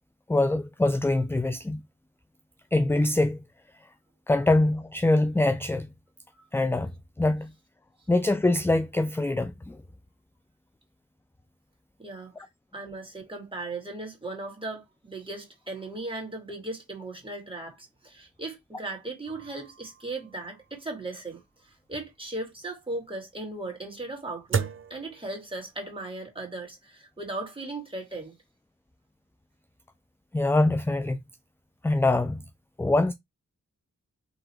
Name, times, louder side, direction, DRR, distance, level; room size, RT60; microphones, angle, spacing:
voice 1, 0.3-1.8 2.7-3.4 4.3-5.9 6.5-6.9 7.2-7.5 8.1-9.8 30.3-31.2 31.8-32.4 32.8-33.1, left 2 dB, 10° left, 0.4 m, -24 dB
voice 2, 12.0-28.4, right 2 dB, 15° right, 2.3 m, -37 dB
sound 1, 19.3-25.9, right 6 dB, 45° right, 0.7 m, -37 dB
3.9 x 2.9 x 4.3 m
cardioid pair, 70°, 29 cm